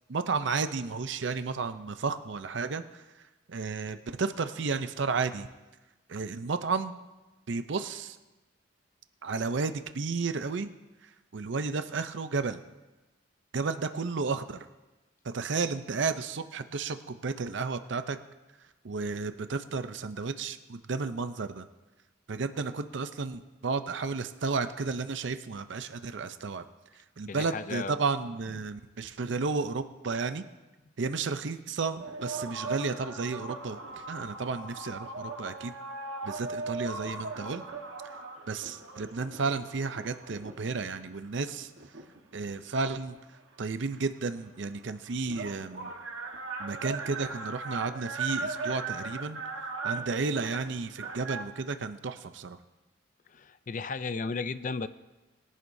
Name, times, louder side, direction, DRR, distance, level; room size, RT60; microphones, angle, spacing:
voice 1, 0.1-3.0 3.5-5.5 6.1-7.0 7.5-8.2 9.2-10.7 11.0-12.6 13.5-14.7 15.2-18.2 18.8-21.6 22.3-26.6 26.9-30.5 31.0-35.7 36.2-37.6 38.5-41.7 42.3-43.2 43.6-45.9 46.6-49.4 49.8-52.6, right 4 dB, 60° right, 10 dB, 0.5 m, -32 dB
voice 2, 27.3-28.0 53.3-54.9, left 4 dB, 40° left, 13 dB, 0.4 m, -34 dB
sound 1, 32.0-40.8 41.5-43.2 44.4-44.5 44.6-51.4, right 3 dB, 80° right, 1.3 m, -38 dB
21.5 x 11.0 x 2.7 m, 1.1 s
head